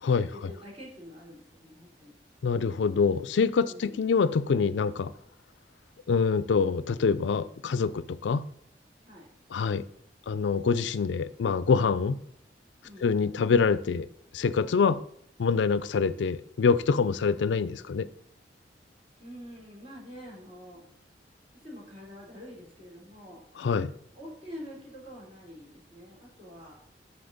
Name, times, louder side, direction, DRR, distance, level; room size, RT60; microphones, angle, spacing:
voice 1, 0.1-2.1 3.6-4.0 9.0-9.3 12.8-13.1 19.2-20.8 21.5-23.4 24.1-26.7, equal, 35° right, 3.1 m, -46 dB
voice 2, 2.4-5.1 6.1-8.5 9.5-9.9 10.3-12.2 13.0-14.1 14.3-15.0 15.4-18.1 23.6-23.9, left 5 dB, 85° left, 0.4 m, -25 dB
7.8 x 5.6 x 3.9 m
head